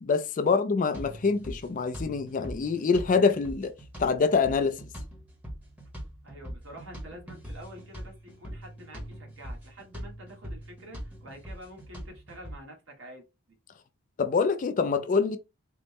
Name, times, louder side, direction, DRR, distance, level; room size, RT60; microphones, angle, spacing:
voice 1, 0.0-3.7 4.0-4.8 14.2-15.4, left 5 dB, 40° left, 0.3 m, -25 dB
sound 1, 0.9-12.6, equal, 5° right, 1.0 m, -42 dB
voice 2, 6.2-13.6, equal, 60° right, 1.4 m, -48 dB
3.9 x 2.1 x 3.4 m
head